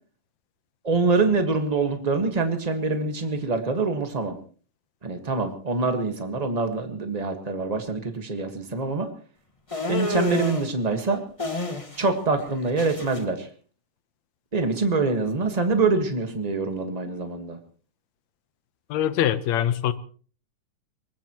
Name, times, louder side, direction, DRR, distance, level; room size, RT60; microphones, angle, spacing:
voice 1, 0.8-4.4 5.0-9.1 9.9-11.2 12.0-13.5 14.5-17.6, right 3 dB, 45° right, 6 dB, 0.5 m, -25 dB
sound 1, 9.7-10.7 11.4-12.1 12.4-13.2, left 2 dB, 20° left, 1.0 m, -29 dB
voice 2, 18.9-19.9, left 11 dB, 70° left, 12 dB, 2.1 m, -23 dB
24.0 x 20.0 x 3.0 m, 0.40 s
omnidirectional pair, 3.6 m